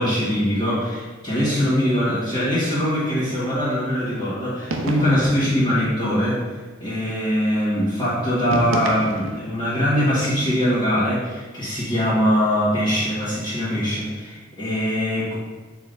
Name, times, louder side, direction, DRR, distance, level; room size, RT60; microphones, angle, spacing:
voice 1, 0.0-6.4 6.8-15.4, equal, 25° left, -12 dB, 1.6 m, -22 dB
sound 1, 4.7-5.4 8.5-9.5, right 2 dB, 85° right, 0.7 m, -28 dB
6.8 x 3.6 x 4.0 m, 1.3 s
head